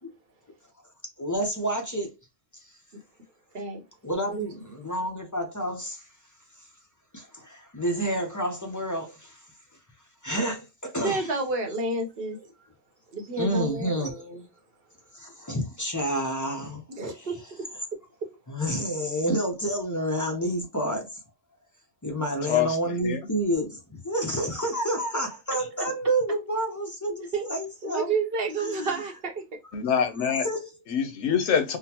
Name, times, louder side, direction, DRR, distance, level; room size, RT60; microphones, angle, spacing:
voice 1, 1.2-2.1 4.0-6.0 7.1-9.4 10.2-11.3 13.4-14.3 15.1-17.3 18.5-21.2 22.0-28.2 28.6-29.0 30.4-30.7, right 1 dB, 25° left, 0.4 m, -29 dB
voice 2, 11.0-12.4 13.1-14.4 17.0-17.4 27.3-27.5 27.8-29.6, right 3 dB, 60° right, 0.9 m, -30 dB
voice 3, 22.4-23.2 29.7-30.5 30.9-31.8, left 7 dB, 85° left, 1.0 m, -25 dB
3.8 x 2.0 x 2.8 m
omnidirectional pair, 1.2 m